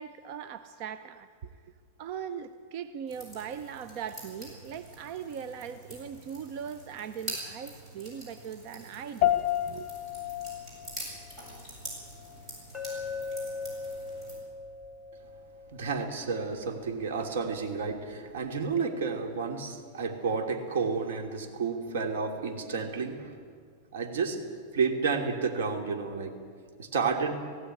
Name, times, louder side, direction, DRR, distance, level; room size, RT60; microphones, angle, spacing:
voice 1, 0.0-1.7 2.0-9.3 9.7-9.9, right 8 dB, 40° right, 10 dB, 0.8 m, -40 dB
sound 1, 3.1-14.4, right 1 dB, 20° right, 7.9 m, -45 dB
sound 2, 9.2-18.8, left 13 dB, 35° left, 1.8 m, -35 dB
Glass, 12.7-16.9, left 4 dB, 10° left, 4.5 m, -40 dB
voice 2, 15.7-23.3 23.9-24.4 24.7-26.4 26.8-27.4, right 5 dB, 85° right, 5 dB, 3.0 m, -31 dB
19.5 x 16.0 x 9.8 m, 2.1 s
supercardioid pair, 165°, 0 cm